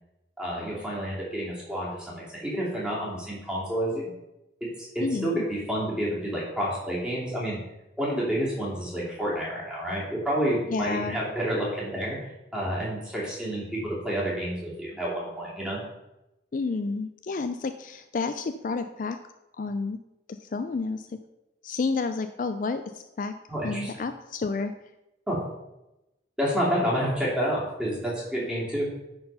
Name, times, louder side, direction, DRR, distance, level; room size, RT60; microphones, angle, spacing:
voice 1, 0.4-4.1 4.8-4.9 5.2-7.6 8.0-12.2 12.5-15.8 23.5-23.9 25.3-25.4 26.4-28.9, equal, 5° right, -6 dB, 2.8 m, -29 dB
voice 2, 5.0-5.4 10.7-11.2 16.5-19.2 19.6-20.0 20.5-21.1 21.6-23.3 23.6-24.7, left 4 dB, 45° left, 9 dB, 0.3 m, -30 dB
9.6 x 4.6 x 5.4 m, 0.94 s
head